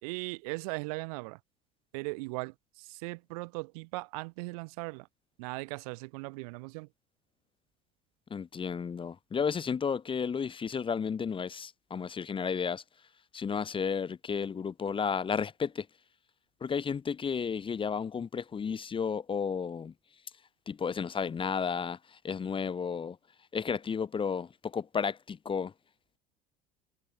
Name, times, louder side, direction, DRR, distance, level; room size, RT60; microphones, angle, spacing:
voice 1, 0.0-1.4 1.9-5.1 5.4-6.9, right 28 dB, 65° right, 0.9 m, -38 dB
voice 2, 8.3-12.8 13.3-15.9 16.6-19.9 20.7-23.2 23.5-25.7, left 6 dB, 25° left, 1.0 m, -32 dB
figure-of-eight pair, 65°, 20 cm